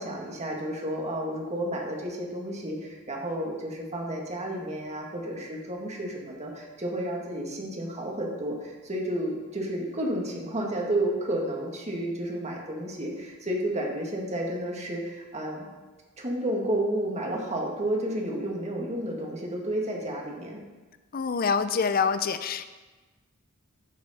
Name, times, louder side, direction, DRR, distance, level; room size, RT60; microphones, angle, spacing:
voice 1, 0.0-15.7 16.2-20.6, right 1 dB, 35° right, -1 dB, 1.8 m, -31 dB
voice 2, 21.1-22.7, left 5 dB, 45° left, 11 dB, 0.5 m, -26 dB
13.5 x 6.2 x 4.2 m, 1.3 s
head